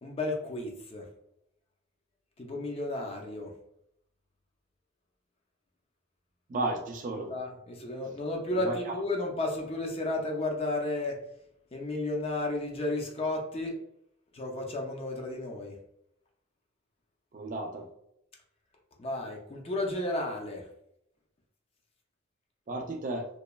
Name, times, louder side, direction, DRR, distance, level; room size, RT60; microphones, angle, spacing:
voice 1, 0.0-1.1 2.4-3.5 7.2-11.2 11.7-13.8 14.3-15.8 19.0-20.7, left 2 dB, 30° left, 1 dB, 0.4 m, -33 dB
voice 2, 6.5-7.3 8.5-8.9 17.3-17.9 22.7-23.3, right 2 dB, 40° right, 4 dB, 0.3 m, -33 dB
2.9 x 2.1 x 2.2 m, 0.77 s
head